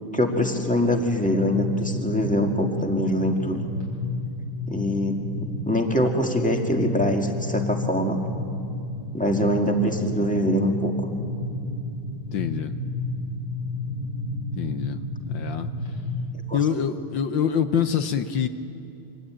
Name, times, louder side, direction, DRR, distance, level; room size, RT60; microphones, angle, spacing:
voice 1, 0.1-3.7 4.7-8.2 9.1-11.1 16.5-16.6, equal, 5° left, 2 dB, 1.6 m, -24 dB
sound 1, 1.0-16.2, left 2 dB, 85° left, 6.4 m, -31 dB
voice 2, 12.3-12.7 14.6-15.0 15.3-15.7 16.5-18.5, left 8 dB, 65° left, 9 dB, 1.5 m, -25 dB
24.5 x 19.0 x 8.8 m, 2.6 s
omnidirectional pair, 2.4 m